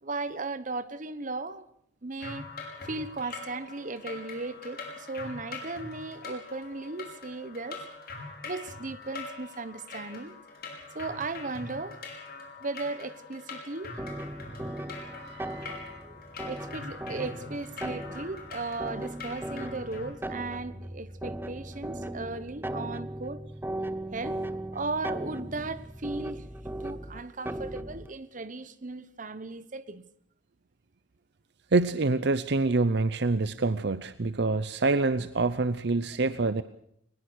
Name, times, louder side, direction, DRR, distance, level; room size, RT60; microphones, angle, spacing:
voice 1, 0.0-1.7 2.0-2.4 2.8-7.8 8.4-10.4 10.9-12.0 12.6-13.9 16.0-23.4 24.1-24.4 24.7-26.4 26.8-30.0, right 3 dB, 45° right, 1.2 m, -36 dB
sound 1, 2.2-20.1, left 3 dB, 55° left, 5.5 m, -43 dB
sound 2, 14.0-28.1, right 1 dB, 10° right, 0.9 m, -38 dB
voice 2, 14.9-16.0 31.7-36.6, right 3 dB, 65° right, 0.7 m, -27 dB
21.5 x 20.5 x 6.4 m
head